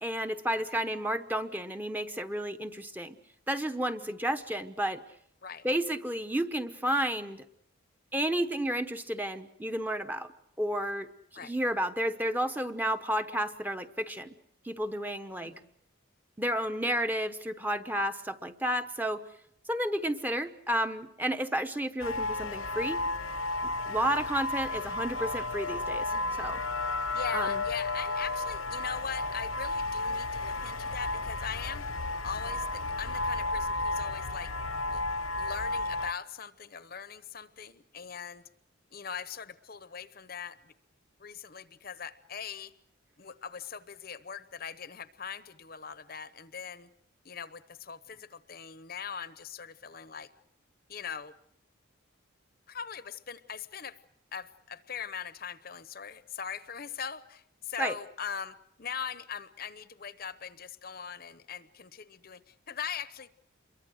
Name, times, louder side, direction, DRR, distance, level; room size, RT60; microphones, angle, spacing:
voice 1, 0.0-3.2 3.5-5.0 5.6-7.4 8.1-10.3 10.6-11.1 11.4-14.3 14.6-15.5 16.4-19.2 19.7-23.0 23.6-26.6 27.3-27.6 57.8-58.0, right 1 dB, 10° right, 7 dB, 0.9 m, -31 dB
sound 1, 22.0-36.1, left 2 dB, 75° left, 0.9 m, -33 dB
voice 2, 26.1-26.6 27.1-34.5 34.9-35.0 35.4-38.4 38.9-40.7 41.2-42.7 43.2-46.9 47.2-50.3 50.9-51.3 52.7-54.0 54.3-63.3, left 7 dB, 45° left, 14 dB, 0.9 m, -41 dB
27.5 x 23.0 x 6.4 m, 0.72 s
head